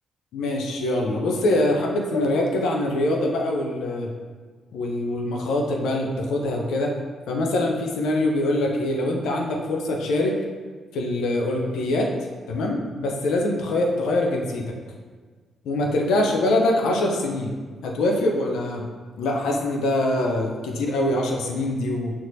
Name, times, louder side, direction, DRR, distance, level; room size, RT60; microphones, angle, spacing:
voice 1, 0.3-4.1 4.7-6.9 7.3-10.4 10.9-12.1 12.5-14.7 15.6-18.8 19.2-22.1, left 1 dB, 75° left, 1 dB, 0.5 m, -24 dB
4.4 x 2.9 x 2.6 m, 1.5 s
hypercardioid pair, 45°, 0 cm